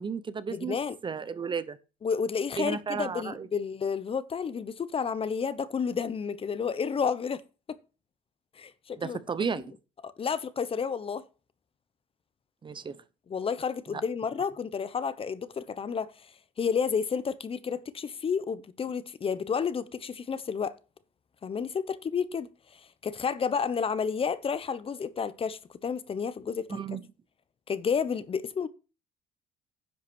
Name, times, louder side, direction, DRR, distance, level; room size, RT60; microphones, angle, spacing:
voice 1, 0.0-0.8 1.0-1.8 2.6-3.5 9.0-9.7 12.6-13.0 13.9-14.0 26.7-27.0, right 6 dB, 30° right, 0.7 m, -33 dB
voice 2, 0.5-1.0 2.0-7.4 7.7-7.8 8.6-9.2 9.5-9.6 10.0-11.2 13.3-16.1 16.6-20.8 21.4-22.5 23.0-26.8 27.7-28.7, left 6 dB, 35° left, 0.8 m, -31 dB
10.0 x 5.8 x 6.1 m
cardioid pair, 110°, 17 cm